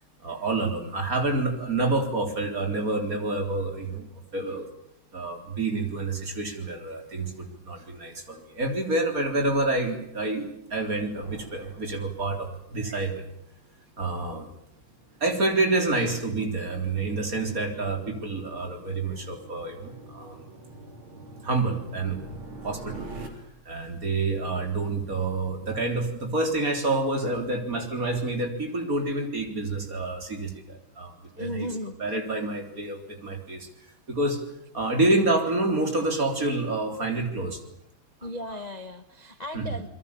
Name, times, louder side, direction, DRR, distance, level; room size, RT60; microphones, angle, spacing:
voice 1, 0.2-4.7 5.1-13.2 14.0-14.5 15.2-20.4 21.4-22.2 22.6-23.3 23.7-31.7 32.0-33.7 34.1-34.4 34.7-37.6 38.2-38.3 39.5-39.8, right 2 dB, 40° right, 4 dB, 4.2 m, -28 dB
sound 1, 11.1-13.1, left 1 dB, 55° left, 5.5 m, -50 dB
sound 2, 12.7-23.3, right 3 dB, 70° right, 4.5 m, -46 dB
voice 2, 31.3-32.0 38.2-39.9, left 1 dB, 25° left, 9 dB, 0.9 m, -35 dB
28.5 x 22.5 x 7.0 m, 0.77 s
omnidirectional pair, 2.4 m